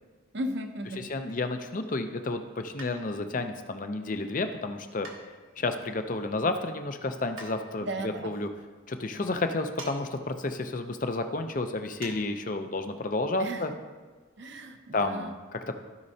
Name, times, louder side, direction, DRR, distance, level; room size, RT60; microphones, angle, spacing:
voice 1, 0.3-1.1 7.8-8.3 13.4-13.8 14.4-15.4, right 1 dB, 55° right, 6 dB, 0.8 m, -36 dB
voice 2, 1.0-5.1 5.6-8.5 8.9-13.7 14.9-15.8, left 2 dB, 40° left, 7 dB, 0.6 m, -31 dB
sound 1, 2.8-3.3 5.0-5.7 7.4-7.6 9.8-10.0 10.3-10.4 12.0-12.2 12.6-12.7, right 2 dB, 75° right, 1.5 m, -44 dB
15.0 x 5.3 x 2.8 m, 1.4 s
head